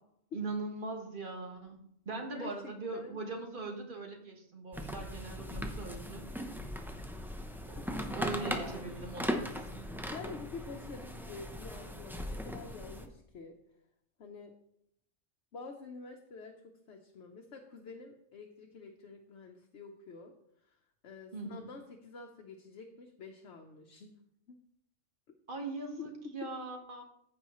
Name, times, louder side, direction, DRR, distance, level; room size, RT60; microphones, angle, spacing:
voice 1, 0.3-6.3 7.7-9.9 21.3-21.7 25.5-27.0, right 3 dB, 45° right, 3 dB, 1.5 m, -41 dB
voice 2, 2.3-3.2 7.4-8.9 10.1-13.6 14.2-14.5 15.5-20.3 20.6-20.8 21.0-24.1 24.5-24.6 25.3-25.4 26.2-26.3, left 4 dB, 65° left, 2 dB, 1.1 m, -48 dB
sound 1, 4.7-13.1, equal, 5° right, 0.5 m, -39 dB
15.0 x 5.5 x 3.1 m, 0.75 s
omnidirectional pair, 1.3 m